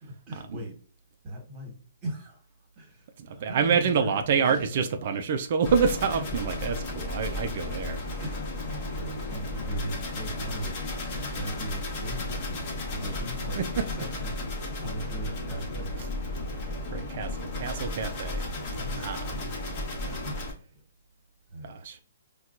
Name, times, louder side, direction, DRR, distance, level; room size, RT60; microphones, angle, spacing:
voice 1, 0.0-0.7 1.2-1.7 2.0-2.4 2.8-4.8 8.2-8.5 8.9-13.6 13.9-14.4 14.8-15.9 18.7-19.3 20.0-20.4 21.5-21.8, right 1 dB, 25° right, 1.4 m, -38 dB
voice 2, 3.2-8.0 16.9-18.4 19.0-19.5 21.6-22.0, right 6 dB, 50° right, 0.4 m, -27 dB
sound 1, 5.6-20.5, left 2 dB, 35° left, 1.1 m, -34 dB
4.3 x 2.3 x 2.5 m
hypercardioid pair, 145°, 0 cm